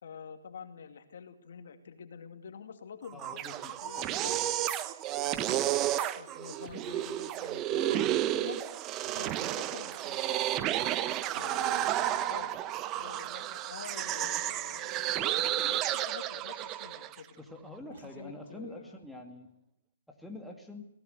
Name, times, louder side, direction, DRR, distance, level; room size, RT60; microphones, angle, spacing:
voice 1, 0.0-4.4 5.2-5.5 6.0-8.6 9.0-10.4 11.3-12.5 12.9-17.4 17.9-19.0, left 6 dB, 65° left, 7 dB, 2.4 m, -47 dB
sound 1, 1.3-1.6 2.0-2.3 2.7-2.8 3.1-3.5 4.2-4.8 5.5-5.8 7.2-8.1 8.4-8.5 8.8-9.3 9.5-10.9 11.2-11.5 11.9-12.3 12.6-15.4 16.3-16.4 16.7-18.3 18.9-19.3, right 4 dB, 55° right, 6.2 m, -54 dB
voice 2, 3.1-4.5 5.5-5.7 17.4-19.5 20.1-20.9, left 1 dB, ahead, 1 dB, 2.3 m, -46 dB
sound 2, 3.1-17.2, right 13 dB, 20° right, 0.8 m, -32 dB
21.5 x 18.0 x 8.0 m, 0.80 s
hypercardioid pair, 150°, 0 cm